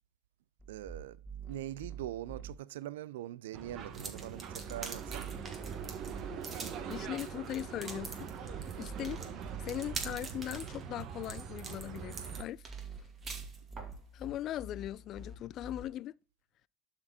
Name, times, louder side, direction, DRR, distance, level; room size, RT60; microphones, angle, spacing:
sound 1, 0.6-2.5 4.4-6.3 8.2-10.1 12.0-15.8, right 4 dB, 10° right, 2.4 m, -47 dB
voice 1, 0.7-5.3, right 13 dB, 80° right, 0.4 m, -43 dB
sound 2, 3.5-12.4, right 7 dB, 50° right, 1.2 m, -43 dB
sound 3, 3.9-14.0, right 4 dB, 30° right, 2.3 m, -45 dB
voice 2, 6.9-9.2 9.6-12.7 14.1-16.2, left 12 dB, 50° left, 0.4 m, -40 dB
11.5 x 4.3 x 4.2 m
hypercardioid pair, 95°, 0 cm